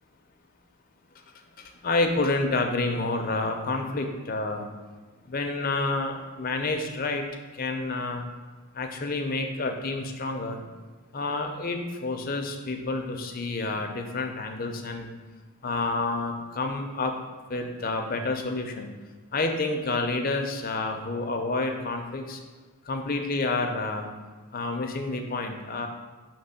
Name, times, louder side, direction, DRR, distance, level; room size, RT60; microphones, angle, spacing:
voice 1, 1.6-4.7 5.3-7.3 7.5-8.2 8.7-10.6 11.1-15.1 15.6-17.1 17.5-18.9 19.3-22.4 22.9-24.1 24.5-25.9, left 3 dB, 40° left, 4 dB, 0.5 m, -29 dB
6.0 x 3.0 x 5.6 m, 1.3 s
head